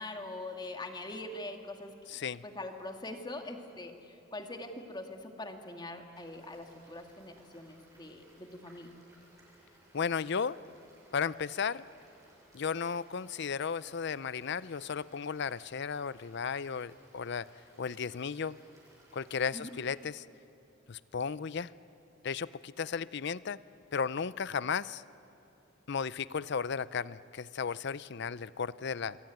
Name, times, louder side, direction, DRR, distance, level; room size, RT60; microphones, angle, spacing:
voice 1, 0.0-8.9 19.5-19.7, left 2 dB, 20° left, 4 dB, 2.1 m, -43 dB
voice 2, 2.1-2.4 9.9-10.6 11.1-11.8 12.5-17.5 17.8-18.6 19.1-20.3 20.9-21.7 22.2-23.6 23.9-25.0 25.9-29.2, left 6 dB, 60° left, 18 dB, 0.6 m, -34 dB
sound 1, 6.1-20.1, right 1 dB, 15° right, 7.2 m, -62 dB
27.0 x 23.0 x 9.3 m, 2.8 s
head